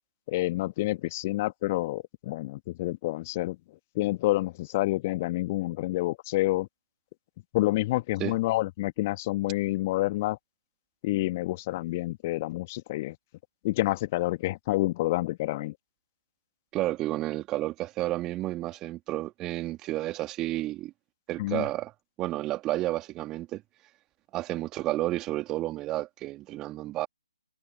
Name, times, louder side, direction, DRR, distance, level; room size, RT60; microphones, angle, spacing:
voice 1, 0.3-3.6 3.9-6.7 7.5-10.4 11.0-13.1 13.6-15.7 21.4-21.6, left 18 dB, 25° left, 1.5 m, -28 dB
voice 2, 16.7-20.9 21.3-21.9 22.2-23.6 24.3-27.1, right 16 dB, 15° right, 2.3 m, -31 dB
figure-of-eight pair, 140°, 3 cm